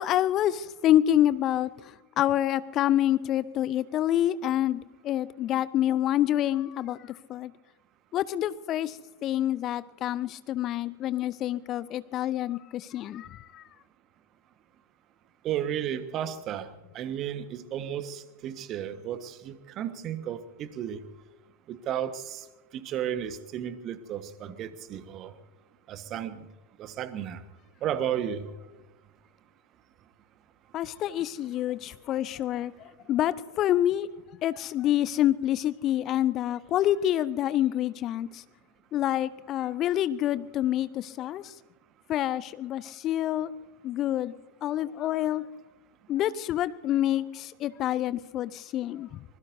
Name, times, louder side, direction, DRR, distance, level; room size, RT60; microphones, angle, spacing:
voice 1, 0.0-7.5 8.1-13.6 30.7-34.1 34.4-38.4 38.9-41.5 42.1-43.5 43.8-44.3 44.6-45.5 46.1-49.2, left 12 dB, 35° left, 18 dB, 0.5 m, -27 dB
voice 2, 15.4-16.7 16.9-21.0 21.7-22.4 22.7-25.3 25.9-26.4 26.8-27.4 27.8-28.5, right 10 dB, 35° right, 12 dB, 1.4 m, -33 dB
25.5 x 21.0 x 2.7 m, 1.1 s
figure-of-eight pair, 90°, 0 cm